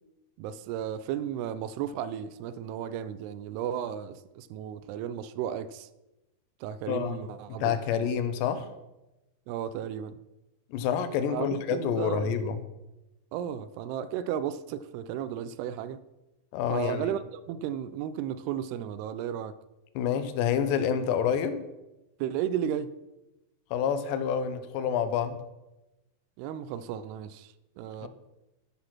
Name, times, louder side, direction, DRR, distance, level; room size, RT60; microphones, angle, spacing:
voice 1, 0.4-5.9 6.6-8.1 9.5-10.2 11.3-12.3 13.3-16.0 16.7-17.2 17.5-19.6 22.2-22.9 26.4-28.1, right 9 dB, 85° right, 2.4 m, -34 dB
voice 2, 6.9-8.7 10.7-12.6 16.5-17.2 20.0-21.6 23.7-25.4 28.0-28.1, left 8 dB, 90° left, 3.1 m, -28 dB
13.0 x 6.2 x 5.8 m
omnidirectional pair, 4.9 m